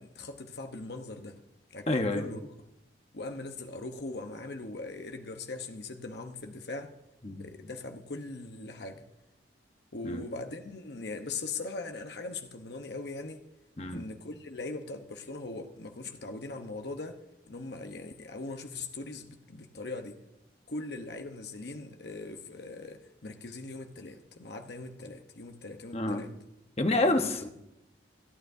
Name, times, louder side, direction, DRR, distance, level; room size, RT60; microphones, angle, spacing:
voice 1, 0.0-1.4 1.7-2.4 3.1-6.9 7.3-9.0 9.9-13.4 13.9-17.2 17.5-20.2 20.7-26.3 27.1-27.3, left 3 dB, 60° left, 1.0 m, -40 dB
voice 2, 1.9-2.2 7.2-7.5 10.0-10.2 13.8-14.0 25.9-26.2 26.8-27.5, left 2 dB, 35° left, 1.0 m, -28 dB
26.0 x 9.2 x 2.7 m
head